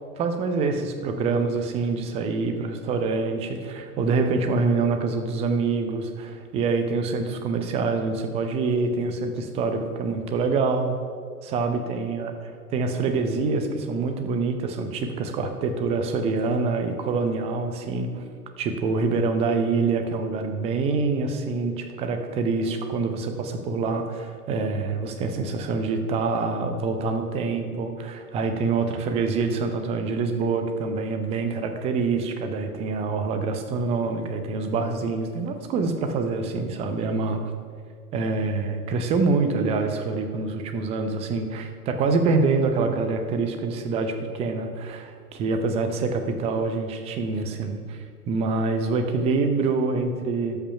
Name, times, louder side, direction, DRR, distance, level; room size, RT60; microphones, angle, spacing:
voice 1, 0.2-11.0 11.4-12.3 12.7-18.2 18.6-37.4 38.1-50.6, right 4 dB, 15° right, 6 dB, 0.5 m, -26 dB
12.5 x 5.7 x 5.5 m, 2.1 s
figure-of-eight pair, 110°, 46 cm